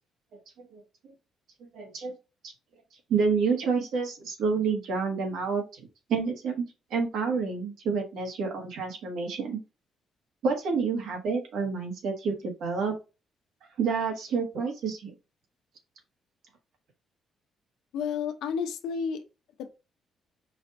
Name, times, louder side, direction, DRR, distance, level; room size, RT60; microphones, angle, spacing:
voice 1, 1.7-2.1 2.4-2.5 3.1-6.6 6.9-9.6 10.4-12.9 13.8-15.1, right 5 dB, 80° right, 1.6 m, -29 dB
voice 2, 17.9-19.2 19.6-19.7, left 6 dB, 85° left, 0.7 m, -31 dB
4.9 x 2.6 x 4.1 m
cardioid pair, 90°, 0 cm